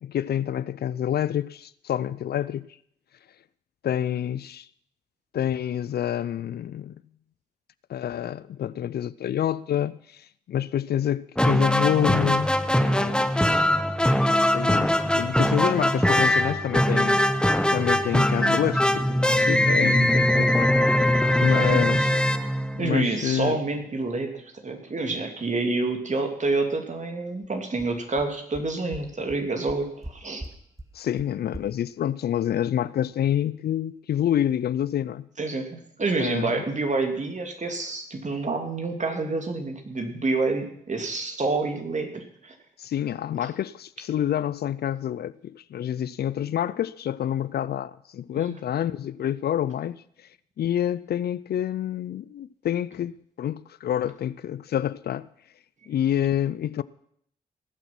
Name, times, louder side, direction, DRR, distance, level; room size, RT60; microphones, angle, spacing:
voice 1, 0.0-2.7 3.8-4.7 5.3-7.0 7.9-13.4 14.5-17.2 17.7-20.8 21.4-22.1 22.8-23.6 30.9-35.3 36.2-36.6 42.8-50.0 50.6-55.3 55.9-56.8, left 10 dB, 65° left, 0.5 m, -28 dB
sound 1, 11.4-23.2, left 1 dB, 5° left, 0.9 m, -21 dB
voice 2, 21.5-21.8 22.8-30.5 35.4-42.5 48.5-48.6, right 3 dB, 45° right, 2.8 m, -28 dB
sound 2, 27.4-27.5 27.8-27.9 28.2-28.3 28.5-28.6 28.9-29.0 29.3-29.4 29.7-30.1 30.4-30.5 30.8-30.9 31.2-31.3 31.5-31.6, right 1 dB, 20° right, 2.1 m, -38 dB
19.0 x 8.0 x 6.1 m
supercardioid pair, 40°, 18 cm